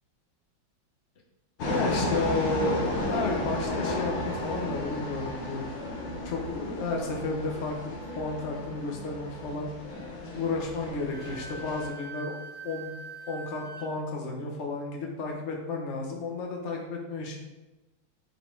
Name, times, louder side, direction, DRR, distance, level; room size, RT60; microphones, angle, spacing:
sound 1, 1.6-11.9, left 1 dB, 70° left, 2.0 m, -33 dB
voice 1, 1.6-5.7 5.9-7.8 8.1-9.7 10.3-12.3 12.6-12.9 13.3-17.4, left 3 dB, 40° left, 0 dB, 1.3 m, -32 dB
Wind instrument woodwind instrument, 11.1-13.9, right 3 dB, 80° right, 0.5 m, -43 dB
10.0 x 4.3 x 3.9 m, 1.1 s
omnidirectional pair, 2.2 m